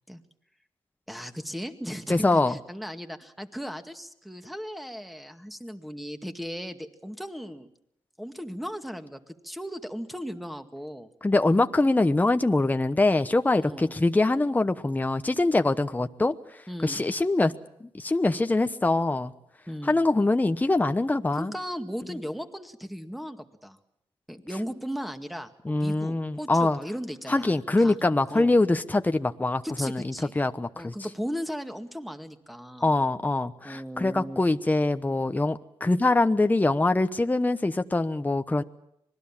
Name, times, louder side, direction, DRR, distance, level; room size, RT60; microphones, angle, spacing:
voice 1, 1.1-7.7 8.2-11.1 13.6-13.9 16.7-17.0 19.7-20.0 21.3-23.8 24.3-28.0 28.3-28.5 29.6-30.3 30.7-32.9 33.6-34.4, equal, ahead, 7 dB, 2.1 m, -37 dB
voice 2, 2.1-2.6 11.2-16.3 16.8-17.5 17.9-19.3 19.8-21.5 25.6-26.8 27.3-30.9 32.8-38.6, left 2 dB, 15° left, 9 dB, 1.0 m, -24 dB
25.5 x 20.0 x 7.4 m, 0.77 s
cardioid pair, 75°, 10 cm